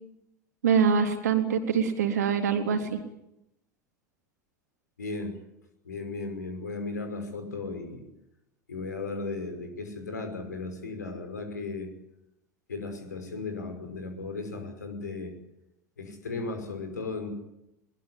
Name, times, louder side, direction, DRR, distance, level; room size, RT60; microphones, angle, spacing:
voice 1, 0.6-3.0, right 6 dB, 65° right, 5 dB, 3.6 m, -24 dB
voice 2, 5.0-5.3 5.9-8.0 8.7-11.9 12.7-15.3 16.0-17.3, left 3 dB, 75° left, 6 dB, 5.6 m, -36 dB
22.0 x 21.0 x 10.0 m, 0.84 s
figure-of-eight pair, 80°, 10 cm